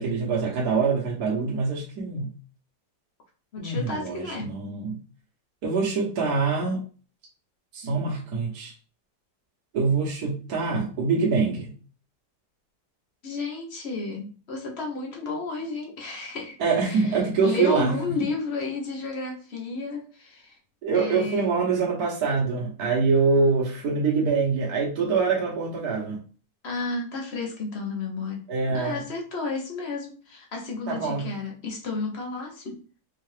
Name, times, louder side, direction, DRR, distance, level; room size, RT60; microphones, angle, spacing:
voice 1, 0.0-2.3 3.6-5.0 5.6-6.8 7.7-8.7 9.7-11.7 16.6-17.9 20.8-26.2 28.5-29.0 30.9-31.3, right 4 dB, 60° right, -4 dB, 1.4 m, -24 dB
voice 2, 3.5-4.5 13.2-16.6 16.8-17.1 17.4-20.6 20.9-21.5 26.6-28.4 28.7-32.8, left 3 dB, 50° left, 1 dB, 0.9 m, -32 dB
4.6 x 2.4 x 3.2 m, 0.38 s
omnidirectional pair, 1.9 m